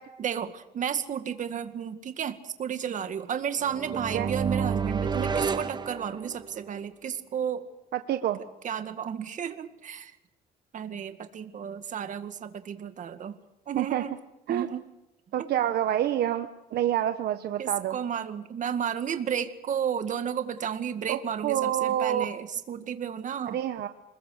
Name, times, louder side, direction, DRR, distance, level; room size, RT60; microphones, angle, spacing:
voice 1, 0.2-7.7 8.6-10.1 10.7-13.4 13.7-14.1 14.5-14.9 15.4-15.7 17.6-23.6, right 8 dB, 50° right, 9 dB, 2.1 m, -33 dB
sound 1, 3.6-6.7, right 6 dB, 25° right, 1.2 m, -30 dB
voice 2, 7.9-8.4 13.8-14.0 14.5-14.7 15.3-18.0 21.1-22.2 23.5-23.9, right 11 dB, 70° right, 8 dB, 1.2 m, -27 dB
27.0 x 21.0 x 6.6 m, 0.93 s
cardioid pair, 130°, 17 cm